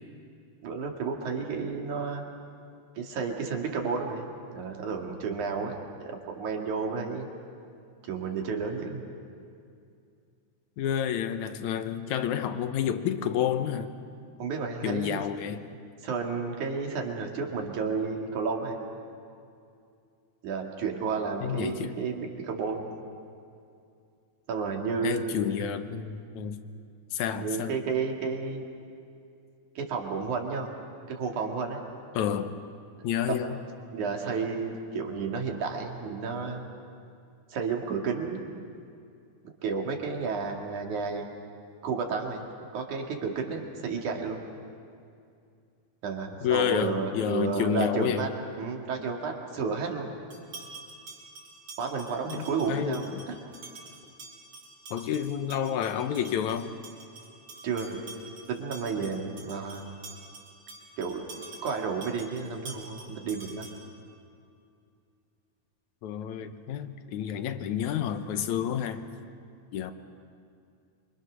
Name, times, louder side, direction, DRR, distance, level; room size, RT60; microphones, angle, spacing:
voice 1, 0.6-2.2 3.0-5.8 6.1-7.3 8.0-9.0 14.4-15.2 16.0-18.8 20.4-22.9 24.5-25.7 27.3-28.6 29.8-30.7 31.1-31.8 33.2-33.4 33.9-36.7 37.5-38.4 39.4-41.3 41.8-42.4 42.7-44.4 46.0-48.3 48.6-50.1 51.8-53.4 57.6-58.1 58.5-59.8 61.0-61.2 61.6-63.7, right 5 dB, 80° right, 1 dB, 3.6 m, -32 dB
voice 2, 10.8-13.9 14.8-15.6 21.4-22.0 25.0-26.6 27.1-27.7 32.2-32.5 33.0-33.6 46.4-48.3 52.3-53.3 54.9-56.7 66.0-69.0 69.7-69.9, left 9 dB, 75° left, 9 dB, 2.3 m, -29 dB
sound 1, 50.3-64.0, right 3 dB, 55° right, 5.5 m, -47 dB
27.0 x 25.0 x 6.3 m, 2.4 s
omnidirectional pair, 3.4 m